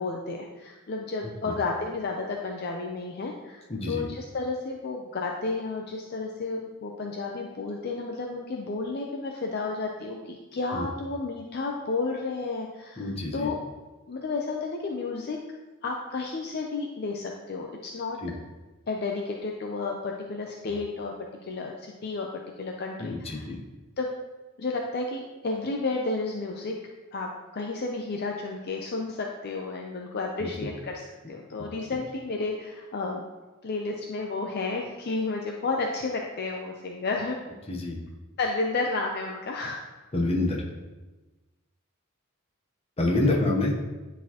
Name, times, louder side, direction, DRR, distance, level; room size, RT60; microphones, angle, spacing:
voice 1, 0.0-13.6 14.1-15.4 15.8-18.2 18.9-21.1 21.4-22.3 22.6-23.4 24.0-24.1 24.6-26.7 27.1-33.2 33.6-37.4 38.4-39.8 43.2-43.4, left 3 dB, 50° left, 1 dB, 0.5 m, -32 dB
voice 2, 3.7-4.1 10.7-10.9 13.0-13.5 18.2-18.3 23.0-23.6 30.4-30.7 37.7-38.0 40.1-40.6 43.0-43.7, left 2 dB, 30° left, 0 dB, 0.9 m, -27 dB
9.8 x 4.0 x 2.9 m, 1.2 s
head